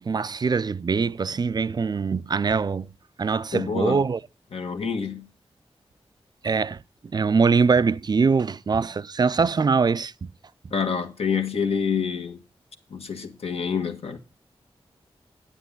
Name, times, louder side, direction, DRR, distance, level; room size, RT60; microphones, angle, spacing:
voice 1, 0.0-2.9 3.2-4.2 6.4-10.3, right 5 dB, 40° right, 0.4 m, -23 dB
voice 2, 3.5-4.1 4.5-5.3 10.7-12.4 12.9-14.2, left 6 dB, 75° left, 1.6 m, -27 dB
9.8 x 8.8 x 3.7 m
wide cardioid pair, 75°, 10 cm